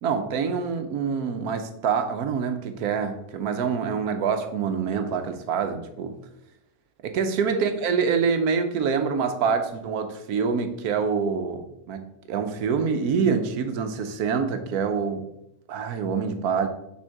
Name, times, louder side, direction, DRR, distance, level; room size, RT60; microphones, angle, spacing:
voice 1, 0.0-6.2 7.0-15.3 15.7-16.7, right 6 dB, 85° right, 8 dB, 1.2 m, -26 dB
6.2 x 3.8 x 4.6 m, 0.82 s
omnidirectional pair, 1.6 m